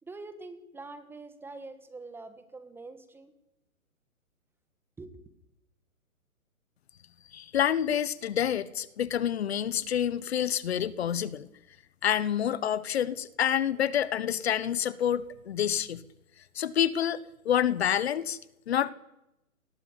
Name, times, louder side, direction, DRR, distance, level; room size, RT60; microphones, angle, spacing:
voice 1, 0.0-3.3 5.0-5.1, right 3 dB, 5° right, 11 dB, 1.3 m, -45 dB
voice 2, 7.3-11.5 12.0-16.0 16.5-17.2 17.4-18.4 18.7-18.9, left 9 dB, 45° left, 18 dB, 1.4 m, -28 dB
30.0 x 20.5 x 8.8 m, 0.90 s
hypercardioid pair, 145°, 43 cm